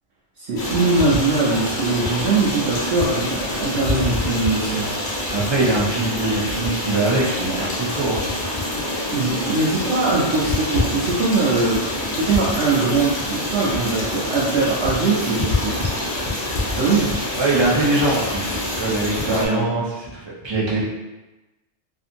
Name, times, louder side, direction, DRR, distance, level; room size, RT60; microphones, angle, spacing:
voice 1, 0.4-4.9 9.1-11.8 12.1-15.7 16.8-17.1 19.2-19.6, right 3 dB, 70° right, -8 dB, 0.8 m, -21 dB
Stream, 0.6-19.5, left 1 dB, 50° left, 0.8 m, -26 dB
voice 2, 5.3-8.3 17.4-20.8, right 2 dB, 40° right, -5 dB, 0.4 m, -22 dB
2.7 x 2.5 x 2.5 m, 1.1 s
omnidirectional pair, 1.2 m